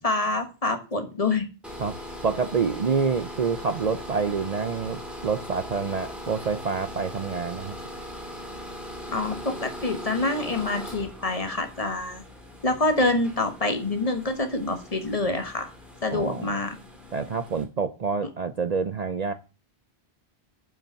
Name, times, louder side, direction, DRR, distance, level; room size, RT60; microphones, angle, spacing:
voice 1, 0.0-1.5 9.1-12.2 12.6-15.7 16.0-16.8, left 2 dB, 35° left, 7 dB, 1.3 m, -26 dB
sound 1, 1.6-17.6, equal, ahead, 2.4 m, -40 dB
voice 2, 2.2-7.7 16.1-16.5 17.1-19.3, right 5 dB, 45° right, 10 dB, 0.6 m, -27 dB
7.2 x 5.9 x 6.9 m, 0.33 s
omnidirectional pair, 1.1 m